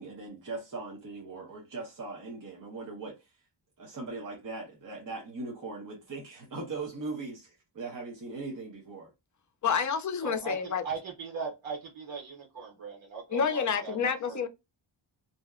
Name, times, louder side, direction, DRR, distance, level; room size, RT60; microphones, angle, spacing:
voice 1, 0.0-3.2 3.8-9.1, right 3 dB, 45° right, 0.9 m, -40 dB
voice 2, 9.6-10.8 13.3-14.5, left 6 dB, 40° left, 0.4 m, -28 dB
voice 3, 10.2-14.0 14.3-14.5, right 5 dB, 85° right, 1.0 m, -39 dB
2.7 x 2.1 x 3.5 m
wide cardioid pair, 165°, 46 cm